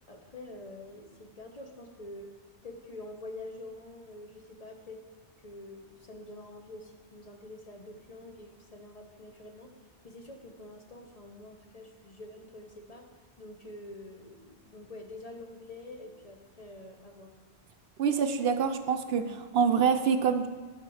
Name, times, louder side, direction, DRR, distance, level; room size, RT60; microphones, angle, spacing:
voice 1, 0.1-2.3 2.6-5.0 5.4-9.7 10.0-13.1 13.4-17.3, left 2 dB, 35° left, 2 dB, 0.9 m, -46 dB
voice 2, 18.0-20.5, right 6 dB, 65° right, 8 dB, 0.8 m, -26 dB
11.0 x 4.3 x 6.3 m, 1.3 s
omnidirectional pair, 1.1 m